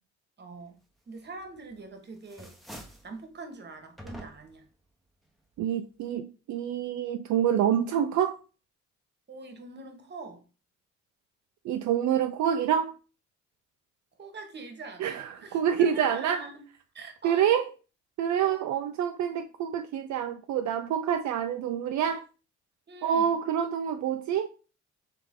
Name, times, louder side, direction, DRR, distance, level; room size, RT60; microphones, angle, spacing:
voice 1, 0.4-0.8 1.1-2.5 3.0-4.7 9.3-10.4 14.2-16.6 16.9-17.6 18.3-18.7 22.9-23.4, right 3 dB, 35° right, 1.2 m, -44 dB
sound 1, 1.4-1.9 2.2-3.1 4.0-4.6, equal, ahead, 0.9 m, -46 dB
voice 2, 5.6-8.4 11.6-12.9 15.0-16.4 17.2-17.7 18.2-22.2 23.0-24.5, right 9 dB, 70° right, 0.5 m, -27 dB
3.6 x 3.3 x 3.5 m
cardioid pair, 90°, 30 cm